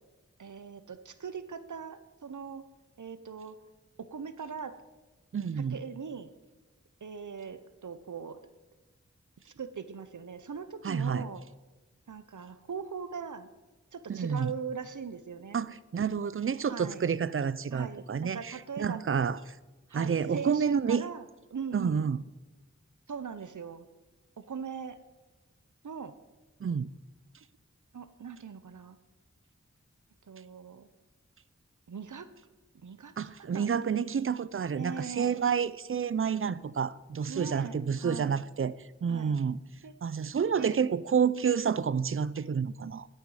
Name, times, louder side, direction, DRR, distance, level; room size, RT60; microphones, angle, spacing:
voice 1, 0.4-2.6 3.0-3.5 4.0-4.7 5.7-6.3 7.0-8.4 9.4-11.4 12.1-13.5 13.9-15.6 16.7-17.1 17.7-19.0 19.9-22.1 23.1-23.9 24.4-25.0 25.8-26.1 27.9-29.0 30.3-30.9 31.9-32.3 32.8-34.0 34.8-35.4 37.3-38.4 39.1-39.4 39.8-39.9 40.5-40.8, right 6 dB, 85° right, 0.7 m, -40 dB
voice 2, 5.3-5.8 10.8-11.3 14.1-14.5 15.5-19.4 19.9-21.1 21.7-22.2 26.6-26.9 33.2-38.7 39.0-39.6 40.0-43.1, right 6 dB, 45° right, 0.5 m, -29 dB
10.5 x 9.1 x 4.8 m
wide cardioid pair, 40°, 29 cm